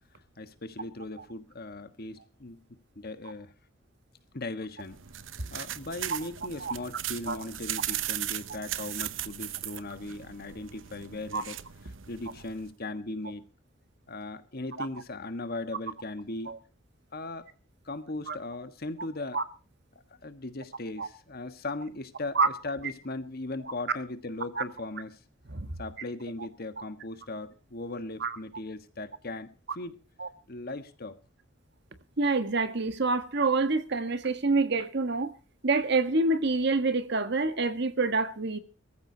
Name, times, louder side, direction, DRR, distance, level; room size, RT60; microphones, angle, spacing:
voice 1, 0.4-2.6 2.9-3.5 4.3-5.0 5.5-11.6 12.1-13.4 14.1-16.5 17.1-17.5 17.8-19.4 20.1-25.2 25.8-30.0 30.5-31.2, left 2 dB, 50° left, 1.5 m, -38 dB
sound 1, 4.8-12.7, right 12 dB, 75° right, 0.8 m, -38 dB
voice 2, 32.2-35.3 35.6-38.6, right 3 dB, 60° right, 1.5 m, -27 dB
23.0 x 14.5 x 2.8 m
head